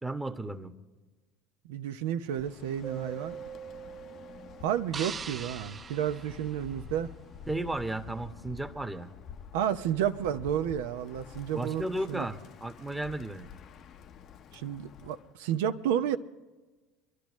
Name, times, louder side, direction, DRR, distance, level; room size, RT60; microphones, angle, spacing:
voice 1, 0.0-0.7 7.5-9.1 11.5-13.5, right 2 dB, 10° right, 1.2 m, -34 dB
voice 2, 1.6-3.4 4.6-7.1 9.5-12.3 14.5-16.2, right 10 dB, 75° right, 0.8 m, -31 dB
Bird, 2.2-15.3, left 8 dB, 50° left, 0.7 m, -49 dB
Keyboard (musical), 2.8-5.6, right 8 dB, 50° right, 0.8 m, -44 dB
sound 1, 4.9-7.2, right 6 dB, 30° right, 0.4 m, -42 dB
25.0 x 12.0 x 3.1 m
hypercardioid pair, 80°, 0 cm